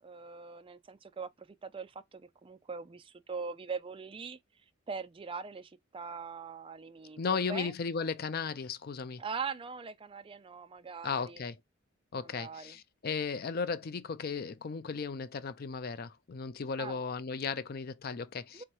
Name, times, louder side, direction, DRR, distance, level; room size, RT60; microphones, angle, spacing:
voice 1, 0.0-4.4 4.9-7.7 9.2-11.4 12.1-12.8 16.8-17.0 18.5-18.6, right 5 dB, 25° right, 0.4 m, -42 dB
voice 2, 7.2-9.2 11.0-11.6 12.1-18.6, left 5 dB, 50° left, 0.5 m, -35 dB
3.5 x 2.9 x 4.7 m
head